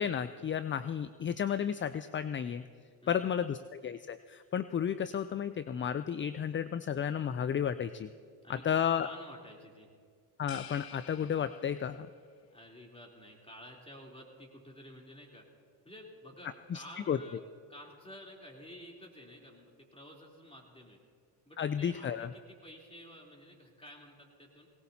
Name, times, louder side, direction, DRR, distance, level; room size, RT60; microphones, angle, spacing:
voice 1, 0.0-2.6 3.1-8.1 8.5-9.1 10.4-12.1 16.7-17.2 21.6-22.3, left 8 dB, 30° left, 13 dB, 0.3 m, -32 dB
voice 2, 3.0-3.4 8.4-9.9 12.5-15.4 15.8-17.4 17.7-21.0 21.4-24.7, equal, 10° left, -1 dB, 3.3 m, -52 dB
sound 1, 10.5-12.2, left 9 dB, 50° left, 0.8 m, -51 dB
18.5 x 18.5 x 2.8 m, 2.1 s
supercardioid pair, 55°, 47 cm